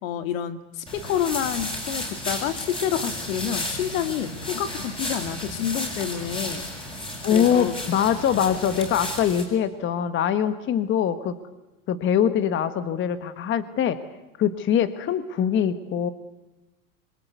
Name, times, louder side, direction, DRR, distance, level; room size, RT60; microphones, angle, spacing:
voice 1, 0.0-6.7 7.3-7.8, left 9 dB, 75° left, 10 dB, 2.3 m, -28 dB
sound 1, 0.9-9.4, left 1 dB, 15° left, 6.6 m, -33 dB
voice 2, 7.2-11.4 11.9-14.0 14.4-16.1, left 9 dB, 30° left, 12 dB, 1.4 m, -23 dB
26.0 x 23.0 x 8.2 m, 1.0 s
supercardioid pair, 135°, 40 cm